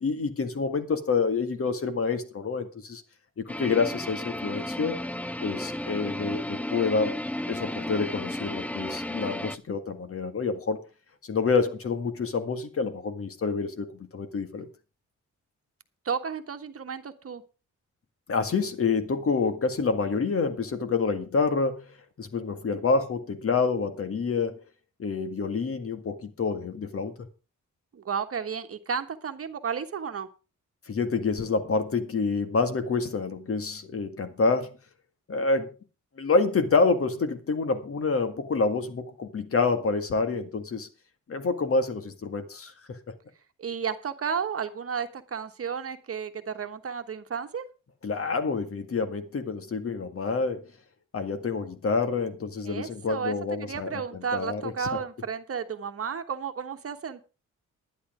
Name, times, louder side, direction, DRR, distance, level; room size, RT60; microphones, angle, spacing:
voice 1, 0.0-3.0 3.4-5.0 5.4-7.2 7.5-10.8 11.2-13.9 14.1-14.7 18.3-21.9 22.2-24.6 25.0-27.1 30.9-34.7 35.3-35.7 36.2-40.9 41.3-43.0 48.0-50.7 51.1-53.9 54.3-54.9, left 4 dB, 45° left, 1.9 m, -27 dB
sound 1, 3.5-9.6, left 1 dB, 5° left, 0.5 m, -33 dB
voice 2, 16.0-17.4 27.9-30.3 43.6-47.6 52.6-57.2, right 6 dB, 50° right, 1.4 m, -33 dB
11.5 x 10.0 x 5.0 m
wide cardioid pair, 125°, 31 cm